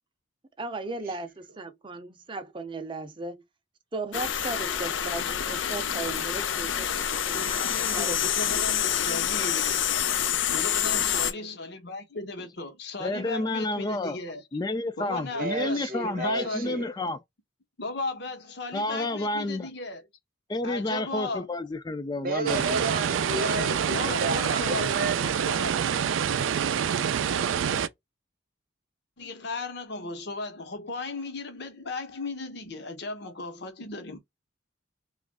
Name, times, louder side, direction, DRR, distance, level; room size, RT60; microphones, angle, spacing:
voice 1, 0.6-3.4 3.9-7.6 7.9-8.2 8.9-9.7, right 3 dB, 25° right, 0.6 m, -37 dB
sound 1, 4.1-11.3, left 9 dB, 80° left, 0.5 m, -27 dB
voice 2, 7.4-9.7 10.4-14.4 15.0-16.8 17.8-20.0 20.6-21.5 23.9-25.8 29.2-34.2, left 2 dB, 60° left, 1.0 m, -36 dB
voice 3, 13.0-14.2 14.5-17.2 18.7-19.7 20.5-22.9, left 2 dB, 20° left, 0.4 m, -30 dB
voice 4, 15.3-16.9 22.2-25.2, right 3 dB, 50° right, 0.9 m, -31 dB
sound 2, 22.5-27.9, right 8 dB, 90° right, 0.4 m, -26 dB
3.1 x 2.4 x 3.6 m
head